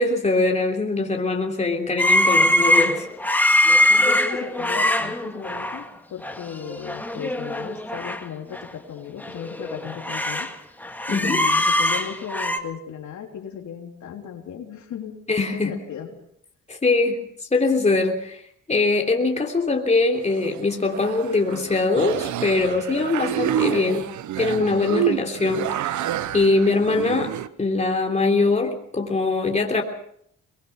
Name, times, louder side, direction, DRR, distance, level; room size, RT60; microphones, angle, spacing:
voice 1, 0.0-3.1 11.1-11.4 15.3-15.7 16.7-17.2 17.5-18.4 18.7-24.1 24.4-26.0 26.3-27.3 27.6-29.8, left 3 dB, 20° left, 2 dB, 3.4 m, -22 dB
sound 1, 2.0-5.8 6.2-6.4 6.7-8.2 8.5-8.6 9.2-10.5 10.8-12.6, left 1 dB, 5° left, 2.0 m, -22 dB
voice 2, 4.0-5.9 6.1-10.5 11.1-15.2 15.5-16.2, left 8 dB, 70° left, 2 dB, 3.6 m, -35 dB
sound 2, 20.2-27.5, right 12 dB, 75° right, 1.0 m, -28 dB
23.0 x 21.0 x 5.8 m, 0.68 s
cardioid pair, 90°, 30 cm